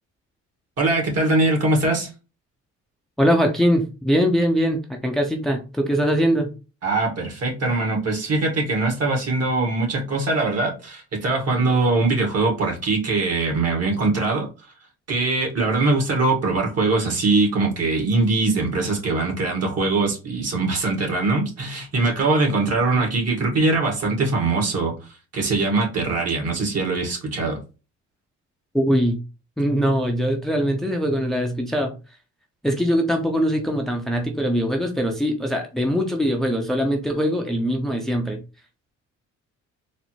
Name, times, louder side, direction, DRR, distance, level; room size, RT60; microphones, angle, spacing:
voice 1, 0.8-2.1 6.8-14.5 15.1-24.9 25.3-27.6, right 3 dB, 55° right, 0 dB, 2.0 m, -22 dB
voice 2, 3.2-6.5 28.7-29.2 29.6-31.9 32.6-38.4, equal, ahead, 2 dB, 0.7 m, -22 dB
4.2 x 2.1 x 4.5 m, 0.32 s
cardioid pair, 90°, 30 cm